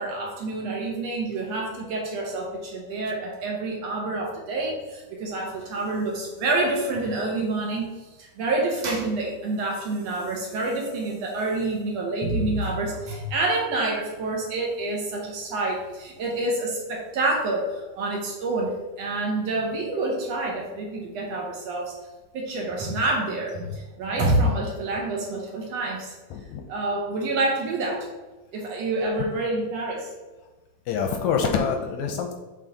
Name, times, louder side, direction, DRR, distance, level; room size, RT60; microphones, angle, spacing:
voice 1, 0.0-7.9 8.2-21.9 22.3-26.2 26.7-28.1 28.5-30.1, right 2 dB, 65° right, -1 dB, 1.9 m, -27 dB
voice 2, 26.3-26.6 30.9-32.3, left 6 dB, 80° left, 4 dB, 1.8 m, -26 dB
7.5 x 3.6 x 3.9 m, 1.2 s
omnidirectional pair, 3.6 m